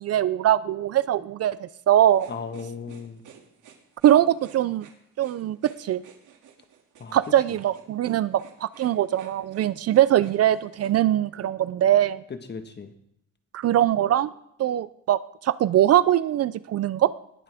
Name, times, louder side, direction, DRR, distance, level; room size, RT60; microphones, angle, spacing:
voice 1, 0.0-2.3 4.0-4.9 5.2-6.0 7.1-12.2 13.5-14.3 14.6-17.1, right 12 dB, 50° right, 17 dB, 0.5 m, -22 dB
sound 1, 2.1-10.9, right 8 dB, 70° right, 2.4 m, -51 dB
voice 2, 2.3-3.2 7.0-7.6 12.3-12.9, left 5 dB, 35° left, 7 dB, 1.4 m, -37 dB
19.5 x 10.0 x 3.5 m, 0.77 s
cardioid pair, 110°, 32 cm